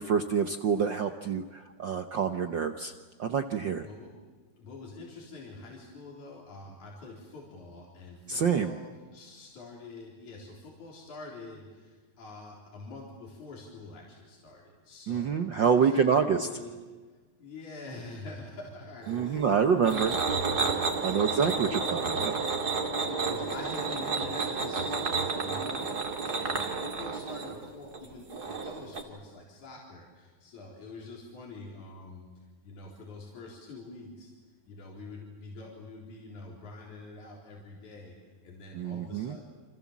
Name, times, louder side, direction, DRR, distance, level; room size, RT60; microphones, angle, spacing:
voice 1, 0.0-2.9 3.2-3.9 8.3-8.7 15.1-16.5 19.1-20.2 21.0-22.4 38.7-39.4, right 6 dB, 70° right, 7 dB, 1.1 m, -27 dB
voice 2, 4.6-8.9 9.1-16.0 16.3-16.7 17.4-22.2 22.6-25.9 26.2-32.3 32.6-34.3 34.7-38.2 38.4-39.4, left 3 dB, 75° left, -2 dB, 5.3 m, -45 dB
sound 1, 19.0-29.0, right 4 dB, 35° right, 2.4 m, -31 dB
29.0 x 26.5 x 7.4 m, 1.3 s
omnidirectional pair, 3.4 m